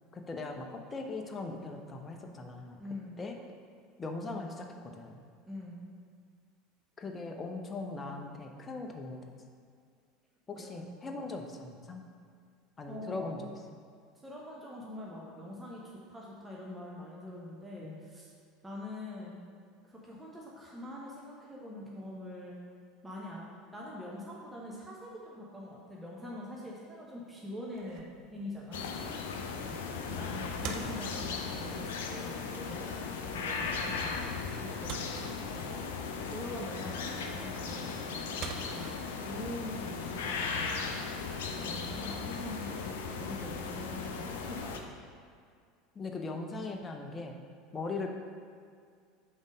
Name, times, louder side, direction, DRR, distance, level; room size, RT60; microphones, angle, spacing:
voice 1, 0.1-2.8 3.2-3.4 4.0-5.2 7.0-9.2 10.5-12.0 12.8-13.5 17.8-18.0 29.7-30.0 45.9-47.4 47.7-48.1, left 3 dB, 25° left, 3 dB, 0.7 m, -40 dB
voice 2, 2.8-3.2 5.5-5.9 10.6-11.2 12.9-13.5 14.2-15.8 16.1-18.3 18.6-19.4 19.8-22.5 23.0-23.5 23.7-29.0 30.1-33.0 33.2-34.1 34.7-35.0 35.5-38.4 38.7-40.8 41.2-44.9, left 1 dB, 10° right, -5 dB, 1.0 m, -44 dB
sound 1, 27.7-42.8, right 7 dB, 50° right, 0.4 m, -49 dB
sound 2, 28.7-44.8, left 5 dB, 70° left, 0.5 m, -37 dB
5.4 x 3.9 x 5.0 m, 2.1 s
figure-of-eight pair, 75°, 0 cm